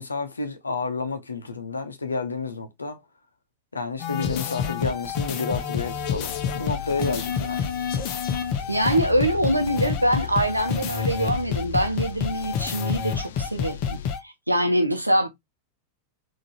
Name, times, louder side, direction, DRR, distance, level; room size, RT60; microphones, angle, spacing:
voice 1, 0.0-3.0 3.7-7.7, left 4 dB, 75° left, 0.8 m, -30 dB
sound 1, 4.0-14.2, left 7 dB, 40° left, 0.8 m, -28 dB
sound 2, 5.8-14.1, left 13 dB, 60° left, 0.3 m, -39 dB
voice 2, 8.7-15.3, right 1 dB, 90° right, 0.8 m, -24 dB
3.8 x 2.7 x 4.1 m
figure-of-eight pair, 90°, 0 cm